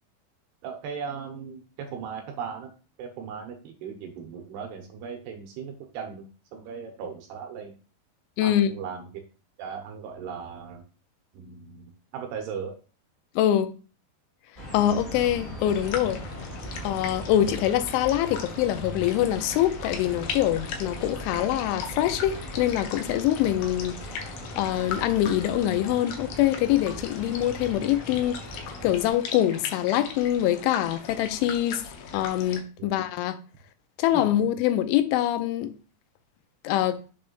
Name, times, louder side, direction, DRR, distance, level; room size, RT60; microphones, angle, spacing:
voice 1, 0.6-2.7 3.0-6.3 6.5-7.7 8.4-9.1 9.6-10.8 11.3-12.7 32.8-32.9 34.1-34.3, right 6 dB, 75° right, 2.6 m, -37 dB
voice 2, 8.4-8.7 13.4-13.7 14.7-16.2 16.8-24.0 24.6-28.4 28.8-31.8 32.1-33.4 34.0-35.7 36.6-37.0, left 12 dB, 90° left, 3.1 m, -24 dB
sound 1, 14.5-29.1, right 1 dB, 50° left, 0.5 m, -39 dB
sound 2, 15.7-32.6, left 6 dB, 75° left, 2.4 m, -39 dB
7.0 x 3.3 x 5.3 m
omnidirectional pair, 5.4 m